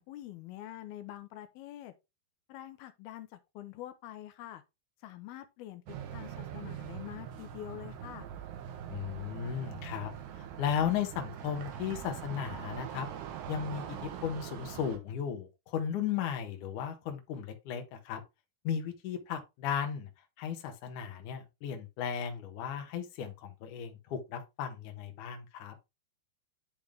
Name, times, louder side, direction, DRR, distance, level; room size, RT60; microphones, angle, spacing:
voice 1, 0.0-1.9 2.5-4.6 5.0-5.8 6.1-8.3, left 13 dB, 85° left, 2.5 m, -45 dB
sound 1, 5.9-15.0, right 9 dB, 85° right, 3.1 m, -43 dB
voice 2, 8.9-10.1 10.4-13.1 13.5-18.2 18.6-20.1 20.4-25.8, left 8 dB, 65° left, 2.3 m, -35 dB
10.5 x 3.6 x 3.5 m
omnidirectional pair, 4.5 m